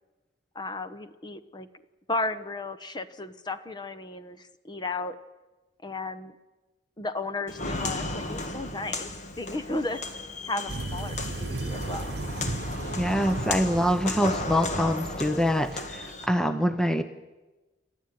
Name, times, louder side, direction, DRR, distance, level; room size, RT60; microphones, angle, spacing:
voice 1, 0.5-1.7 2.1-5.2 5.8-6.4 7.0-9.1 9.4-10.0 10.4-12.1, left 2 dB, 25° left, 11 dB, 1.0 m, -34 dB
Walk footsteps, 7.5-16.3, left 2 dB, 45° left, 1.8 m, -35 dB
sound 1, 10.7-16.0, right 2 dB, 70° right, 1.0 m, -36 dB
voice 2, 13.0-17.0, equal, 5° left, 9 dB, 0.9 m, -25 dB
28.5 x 13.0 x 9.3 m, 1.1 s
head